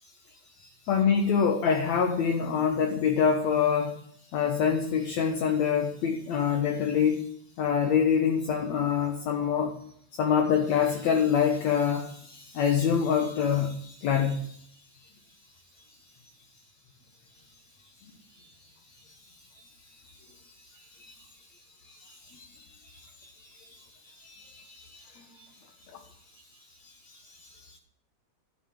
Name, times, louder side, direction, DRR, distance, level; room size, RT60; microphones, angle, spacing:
voice 1, 0.9-4.0 4.3-7.3 7.6-9.7 10.2-14.6 18.4-18.5 20.0-20.3 20.8-21.3 21.9-25.5 25.9-26.0 27.0-27.8, left 7 dB, 60° left, 3 dB, 2.4 m, -26 dB
12.5 x 10.0 x 8.4 m, 0.66 s
omnidirectional pair, 3.7 m